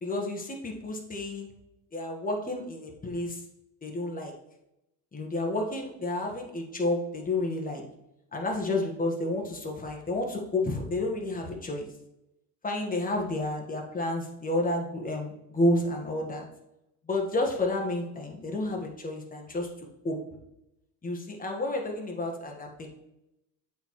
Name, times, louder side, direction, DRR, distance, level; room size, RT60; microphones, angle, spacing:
voice 1, 0.0-1.5 1.9-3.4 3.8-4.3 5.1-7.8 8.3-11.9 12.6-16.4 17.1-19.7 20.0-20.2 21.0-22.9, left 2 dB, 15° left, 1 dB, 1.3 m, -30 dB
7.8 x 4.4 x 3.1 m, 0.87 s
cardioid pair, 110°, 47 cm